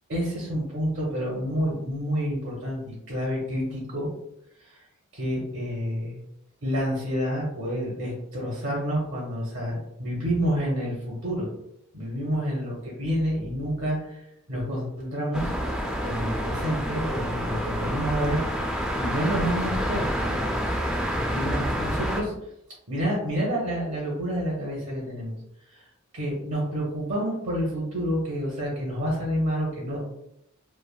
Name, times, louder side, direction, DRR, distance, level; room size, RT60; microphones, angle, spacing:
voice 1, 0.1-4.1 4.6-4.8 5.1-6.2 6.6-11.5 11.9-15.5 16.0-20.3 21.3-22.3 22.9-25.3 25.7-25.8 26.1-30.0, equal, 65° right, -3 dB, 0.8 m, -29 dB
sound 1, 15.3-22.2, equal, 5° right, 0.4 m, -28 dB
3.3 x 2.1 x 2.4 m, 0.78 s
head